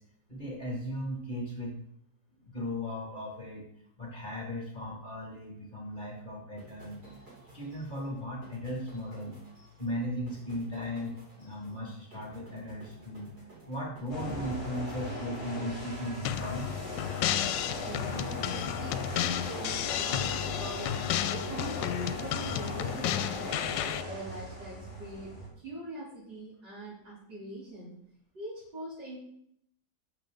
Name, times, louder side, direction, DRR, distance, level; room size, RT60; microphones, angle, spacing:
voice 1, 0.3-1.8 2.4-3.7 4.0-7.0 7.5-9.4 9.8-13.3 13.7-16.7, equal, 25° left, -2 dB, 2.1 m, -37 dB
sound 1, 6.6-21.9, right 2 dB, 60° right, 4.0 m, -55 dB
sound 2, 14.1-25.5, left 2 dB, 40° left, 4.4 m, -39 dB
sound 3, 16.2-24.0, left 11 dB, 85° left, 1.3 m, -32 dB
voice 2, 17.8-20.9 21.3-23.6 24.0-28.0 28.3-29.2, right 1 dB, 75° right, -9 dB, 3.9 m, -43 dB
12.5 x 6.6 x 3.8 m, 0.70 s
omnidirectional pair, 1.9 m